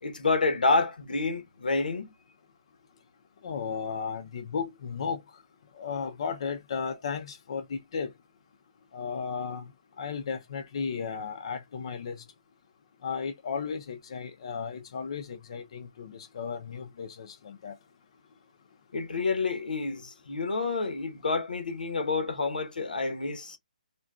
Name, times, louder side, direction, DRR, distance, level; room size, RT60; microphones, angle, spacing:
voice 1, 0.0-2.1 18.9-23.6, left 3 dB, 80° left, 0.9 m, -28 dB
voice 2, 3.4-5.2 5.8-8.1 8.9-9.7 10.0-12.2 13.0-17.7, left 6 dB, 40° left, 0.5 m, -34 dB
3.7 x 2.2 x 2.3 m
hypercardioid pair, 170°, 5 cm